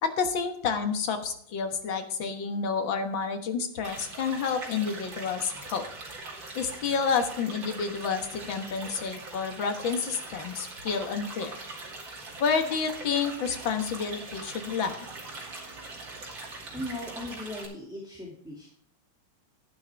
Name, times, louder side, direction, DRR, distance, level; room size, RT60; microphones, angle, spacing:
voice 1, 0.0-5.9 6.6-11.6 12.4-15.0, left 5 dB, 75° left, 6 dB, 2.1 m, -29 dB
sound 1, 3.8-17.7, right 3 dB, 70° right, 3.4 m, -42 dB
voice 2, 16.7-18.7, left 1 dB, ahead, -3 dB, 2.2 m, -38 dB
11.5 x 11.5 x 3.4 m, 0.66 s
omnidirectional pair, 2.1 m